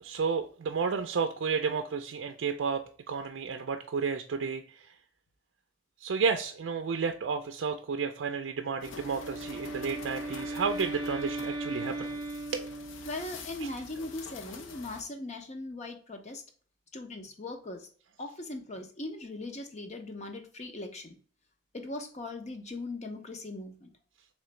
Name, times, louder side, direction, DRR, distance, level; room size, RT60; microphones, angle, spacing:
voice 1, 0.0-5.0 6.0-12.1 12.5-12.7 13.6-13.7, right 5 dB, 80° right, 5 dB, 0.4 m, -32 dB
sound 1, 8.8-15.0, left 4 dB, 85° left, 0.6 m, -46 dB
Wind instrument woodwind instrument, 8.8-13.4, right 2 dB, 25° right, 0.6 m, -37 dB
voice 2, 13.0-16.4 16.9-17.9 18.2-21.2 21.7-23.9, left 2 dB, 35° left, 5 dB, 0.7 m, -39 dB
3.8 x 3.1 x 3.2 m, 0.43 s
head